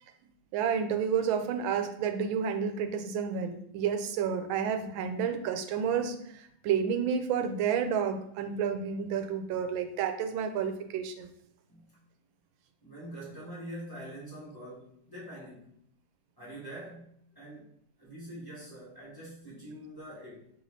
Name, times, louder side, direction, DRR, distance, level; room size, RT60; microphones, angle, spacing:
voice 1, 0.5-11.3, right 7 dB, 90° right, 7 dB, 1.3 m, -30 dB
voice 2, 12.8-15.7 16.4-17.7 18.0-20.5, right 1 dB, 15° left, -8 dB, 0.9 m, -45 dB
3.9 x 3.3 x 3.1 m, 0.69 s
omnidirectional pair, 2.1 m